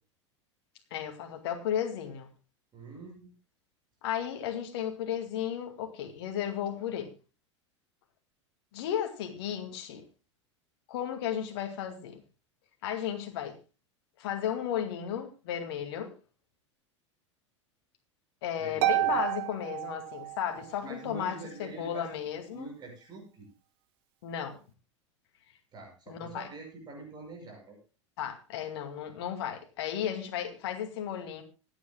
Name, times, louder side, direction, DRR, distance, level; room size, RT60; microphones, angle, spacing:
voice 1, 0.9-2.3 4.0-7.1 8.7-10.0 10.9-12.2 12.8-13.6 14.2-16.1 18.4-22.7 24.2-24.6 26.1-26.5 28.2-31.4, left 9 dB, 55° left, 5 dB, 2.2 m, -34 dB
voice 2, 2.7-3.3 18.6-19.2 20.8-22.1 22.5-23.5 25.7-27.8, right 3 dB, 25° right, 2 dB, 6.0 m, -45 dB
Harp, 18.8-20.7, right 17 dB, 55° right, 1.6 m, -30 dB
26.0 x 8.9 x 2.2 m, 0.34 s
figure-of-eight pair, 85°, 16 cm